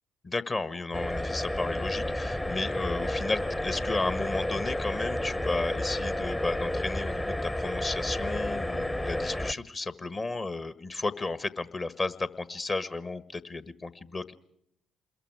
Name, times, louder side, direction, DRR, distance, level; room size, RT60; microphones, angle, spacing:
voice 1, 0.2-14.3, left 3 dB, 35° left, 14 dB, 1.5 m, -33 dB
sound 1, 0.9-9.5, left 1 dB, 15° left, 1.0 m, -31 dB
27.5 x 22.0 x 4.8 m, 0.75 s
hypercardioid pair, 45°, 0 cm